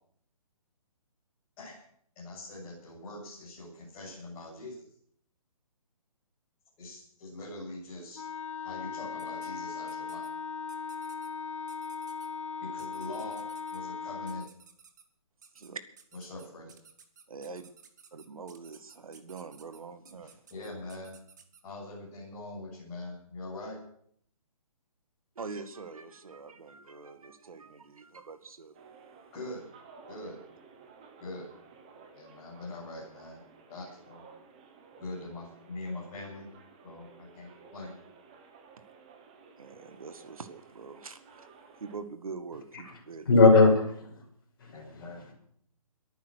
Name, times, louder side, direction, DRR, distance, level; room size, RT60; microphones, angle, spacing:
voice 1, 2.2-4.9 6.8-8.2 8.6-10.3 12.6-14.5 16.1-16.7 20.2-21.2 21.6-23.8 29.3-29.7 30.1-30.4 31.2-31.5 32.1-33.4 33.7-34.2 35.0-36.5 36.8-37.1 37.3-37.9 44.7-45.2, left 2 dB, 15° left, -7 dB, 7.5 m, -43 dB
Wind instrument woodwind instrument, 8.1-14.5, left 5 dB, 60° left, 0.7 m, -38 dB
sound 1, 9.2-9.5 9.9-10.3 10.7-11.3 11.7-12.3 12.8-13.8 14.3-15.0 15.4-15.7 16.0-21.6, right 6 dB, 30° right, 1.6 m, -56 dB
voice 2, 17.3-17.7 18.1-20.4 25.4-28.8 39.6-41.5 41.8-43.3, right 4 dB, 70° right, 10 dB, 2.0 m, -44 dB
sound 2, 28.7-42.0, right 5 dB, 15° right, 1.0 m, -55 dB
voice 3, 43.2-44.3 44.6-45.3, left 3 dB, 40° left, 0 dB, 6.2 m, -22 dB
22.5 x 9.5 x 6.5 m, 0.65 s
hypercardioid pair, 180°, 19 cm